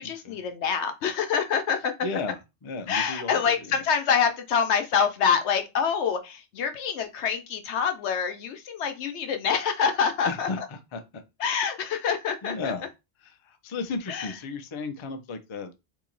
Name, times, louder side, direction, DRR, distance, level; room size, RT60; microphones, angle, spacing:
voice 1, 0.0-1.9 2.9-10.7 11.4-12.7 14.1-14.3, left 6 dB, 75° left, 0.9 m, -26 dB
voice 2, 2.0-3.8 10.2-11.0 12.4-12.9 13.2-15.7, left 3 dB, 40° left, 0.4 m, -34 dB
2.9 x 2.8 x 3.8 m
omnidirectional pair, 1.2 m